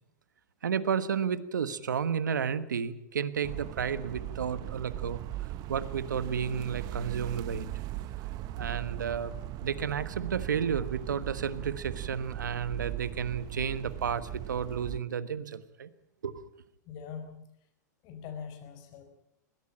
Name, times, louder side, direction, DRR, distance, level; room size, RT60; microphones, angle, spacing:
voice 1, 0.6-5.2 5.7-7.7 8.6-9.3 9.6-15.9 16.2-16.5, right 7 dB, 85° right, 14 dB, 1.3 m, -32 dB
sound 1, 3.4-15.0, right 15 dB, 40° right, 1.0 m, -39 dB
voice 2, 16.8-17.7 18.0-19.0, left 7 dB, 45° left, 7 dB, 4.9 m, -43 dB
21.5 x 16.5 x 8.8 m, 0.80 s
hypercardioid pair, 105°, 10 cm